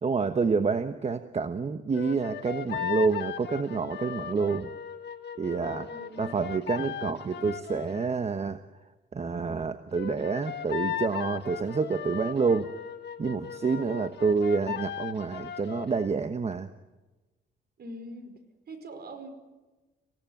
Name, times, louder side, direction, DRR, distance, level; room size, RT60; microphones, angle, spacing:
voice 1, 0.0-4.7 5.4-5.9 6.2-8.6 9.1-12.7 13.2-16.7, right 5 dB, 35° right, 9 dB, 1.1 m, -28 dB
sound 1, 1.9-8.1 9.9-16.1, left 10 dB, 60° left, 1.6 m, -37 dB
voice 2, 5.9-6.4 17.8-19.3, right 1 dB, 55° right, 8 dB, 4.8 m, -43 dB
26.5 x 17.0 x 9.2 m, 1.2 s
cardioid pair, 90°, 20 cm